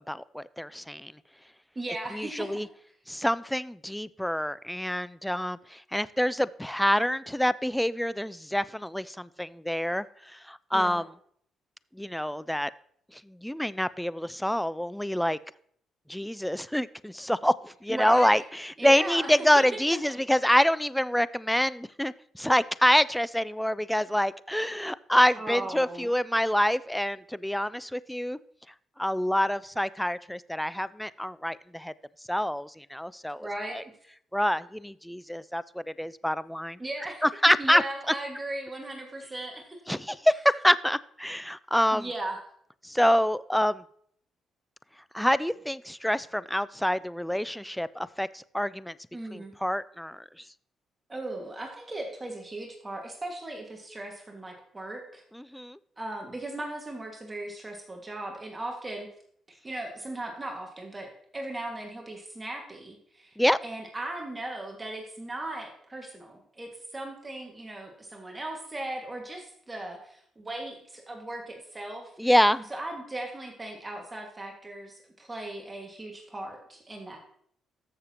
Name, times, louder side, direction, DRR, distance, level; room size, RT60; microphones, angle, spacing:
voice 1, 0.1-1.1 2.1-2.7 3.1-10.0 10.3-11.0 12.0-12.7 13.3-15.4 16.1-28.4 29.0-31.9 32.3-33.8 34.3-35.6 36.0-36.8 37.2-37.8 39.9-42.1 42.8-43.8 45.1-48.9 49.3-50.2 55.3-55.8 63.4-63.6 72.2-72.6, equal, 5° left, 18 dB, 0.3 m, -26 dB
voice 2, 1.8-2.7 10.7-11.0 17.9-18.4 18.8-20.2 25.3-26.1 33.4-33.8 36.8-37.2 37.6-39.8 41.9-42.4 49.1-49.5 51.1-55.2 56.0-59.1 59.5-72.1 72.5-77.2, right 2 dB, 20° right, 1 dB, 1.8 m, -38 dB
14.0 x 6.7 x 2.9 m, 0.64 s
cardioid pair, 90°, 0 cm